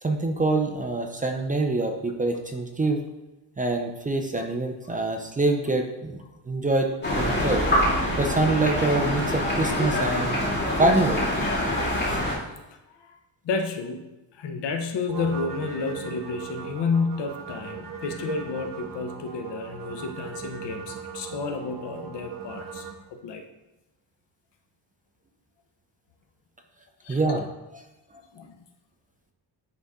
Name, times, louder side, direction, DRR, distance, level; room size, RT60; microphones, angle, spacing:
voice 1, 0.0-3.0 3.6-6.2 6.5-7.7 8.2-10.4 10.8-11.3 12.0-12.2 27.1-27.5 27.7-27.8, right 2 dB, 20° right, 4 dB, 0.6 m, -25 dB
sound 1, 7.0-12.4, left 1 dB, 20° left, 2.5 m, -25 dB
voice 2, 13.4-14.1 14.3-23.4 27.0-27.2 28.3-28.6, left 4 dB, 65° left, 5 dB, 1.0 m, -31 dB
sound 2, 15.1-22.9, right 6 dB, 45° right, 1.4 m, -38 dB
9.7 x 4.1 x 3.6 m, 0.99 s
cardioid pair, 140°, 45 cm